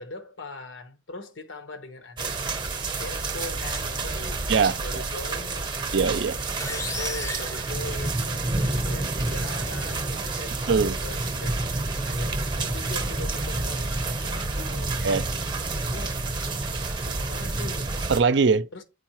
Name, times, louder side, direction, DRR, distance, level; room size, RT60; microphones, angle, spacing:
voice 1, 0.0-2.6 2.9-4.4 4.6-5.8 6.7-11.6 12.0-15.0 15.7-16.2 17.0-18.0 18.7-18.8, left 2 dB, 85° left, 1.1 m, -40 dB
sound 1, 2.2-18.2, right 3 dB, 25° right, 0.7 m, -29 dB
voice 2, 4.5-5.0 5.9-6.4 10.7-11.0 15.0-15.3 18.1-18.7, right 5 dB, 65° right, 0.4 m, -22 dB
sound 2, 6.6-8.5, left 2 dB, 15° left, 0.5 m, -35 dB
8.0 x 4.7 x 3.0 m
head